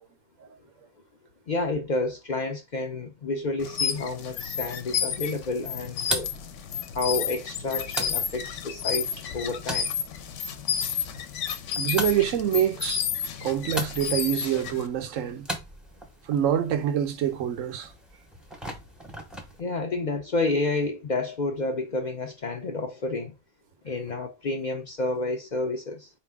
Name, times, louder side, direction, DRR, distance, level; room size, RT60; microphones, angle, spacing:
voice 1, 1.5-6.3 6.9-9.9 19.6-23.3 23.8-26.1, left 2 dB, 55° left, 0.5 m, -30 dB
sound 1, 3.6-14.9, left 8 dB, 75° left, 0.9 m, -31 dB
sound 2, 4.4-19.6, equal, ahead, 0.6 m, -40 dB
voice 2, 11.7-13.0 13.4-15.5 16.3-17.9, right 10 dB, 90° right, 1.0 m, -26 dB
4.1 x 3.0 x 3.4 m
omnidirectional pair, 1.3 m